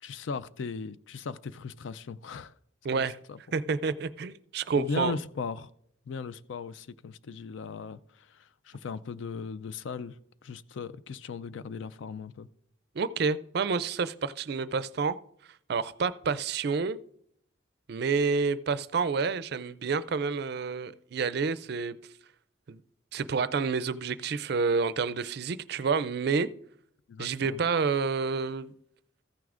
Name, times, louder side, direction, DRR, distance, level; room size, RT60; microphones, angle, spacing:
voice 1, 0.0-2.5 2.9-3.4 4.8-5.7 6.1-10.1 10.4-12.5 27.1-27.6, left 5 dB, 75° left, 0.4 m, -38 dB
voice 2, 2.8-3.2 3.5-5.1 13.0-15.2 15.7-17.0 17.9-22.0 22.7-22.8 23.1-26.5 27.2-28.7, right 5 dB, 55° right, 0.4 m, -29 dB
14.5 x 9.3 x 2.5 m
head